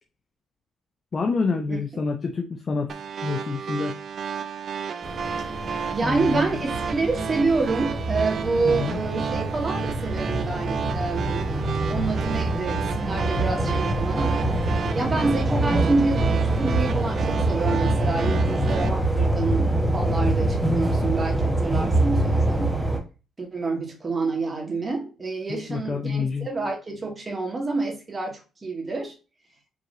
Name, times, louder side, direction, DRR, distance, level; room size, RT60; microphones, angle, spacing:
voice 1, 1.1-2.9 3.2-3.9 6.0-6.6 8.6-9.0 18.5-18.7 25.5-26.5, left 4 dB, 40° left, 4 dB, 0.7 m, -27 dB
sound 1, 2.9-18.9, right 6 dB, 55° right, 0.5 m, -32 dB
sound 2, 5.0-23.0, right 1 dB, 10° right, 1.0 m, -25 dB
voice 2, 5.9-11.5 11.9-14.4 14.9-22.7 23.4-29.1, right 3 dB, 30° right, 1 dB, 1.6 m, -28 dB
5.0 x 3.0 x 2.6 m, 0.32 s
cardioid pair, 90°, 0 cm